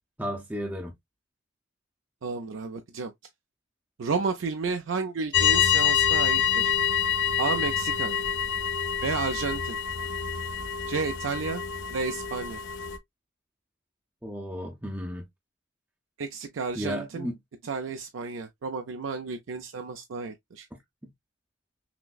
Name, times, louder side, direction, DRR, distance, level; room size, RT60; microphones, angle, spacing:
voice 1, 0.2-0.9 14.2-15.3 16.7-17.4 20.7-20.8, equal, 10° right, 0.6 m, -33 dB
voice 2, 2.2-3.1 4.0-6.7 7.4-8.2 9.0-9.8 10.9-11.6 11.9-12.6 16.2-17.3 17.6-20.7, right 4 dB, 80° right, 0.5 m, -32 dB
sound 1, 5.3-13.0, left 8 dB, 70° left, 0.6 m, -26 dB
5.9 x 2.0 x 2.2 m
head